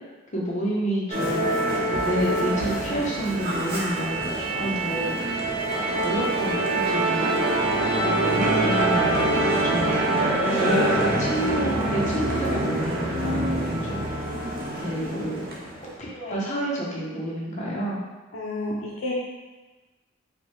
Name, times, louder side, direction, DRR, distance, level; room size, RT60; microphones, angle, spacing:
voice 1, 0.3-1.6 2.0-4.3 4.6-5.3 5.6-7.3 7.8-9.1 9.6-14.0 14.8-15.4 16.0-18.0, right 1 dB, 35° left, -5 dB, 0.9 m, -29 dB
Musical instrument, 1.1-15.8, right 1 dB, 50° right, 0.6 m, -25 dB
voice 2, 18.3-19.1, left 2 dB, 75° left, -3 dB, 0.5 m, -31 dB
4.9 x 2.3 x 3.1 m, 1.2 s
head